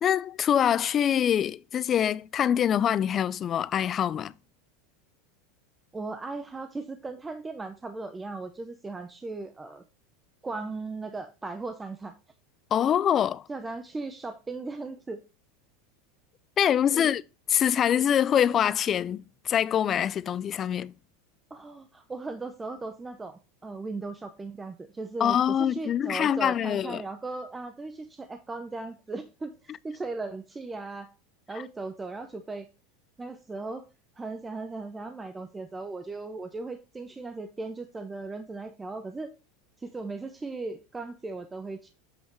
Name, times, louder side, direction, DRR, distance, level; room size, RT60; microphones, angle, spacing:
voice 1, 0.0-4.3 12.7-13.4 16.6-17.2 17.5-20.9 25.2-27.0, left 9 dB, 25° left, 0.3 m, -24 dB
voice 2, 5.9-9.8 10.4-12.1 13.5-15.2 16.9-17.1 21.5-31.1 31.5-32.7 33.2-33.9 34.2-39.3 39.8-41.9, right 3 dB, 10° right, 0.6 m, -37 dB
7.9 x 5.6 x 3.0 m
supercardioid pair, 150°, 0 cm